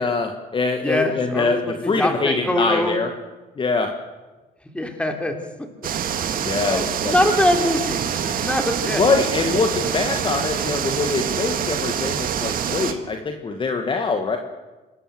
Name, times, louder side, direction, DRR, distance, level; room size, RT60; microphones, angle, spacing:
voice 1, 0.0-3.1 3.6-4.0 6.4-7.2 8.9-14.4, left 4 dB, 30° left, 5 dB, 1.7 m, -23 dB
voice 2, 0.8-1.5 1.8-2.9 4.7-5.7 6.6-9.0, left 1 dB, 5° left, 5 dB, 3.4 m, -23 dB
sound 1, 5.8-12.9, right 8 dB, 60° right, 1.9 m, -25 dB
26.5 x 13.5 x 7.8 m, 1.2 s
cardioid pair, 110°, 17 cm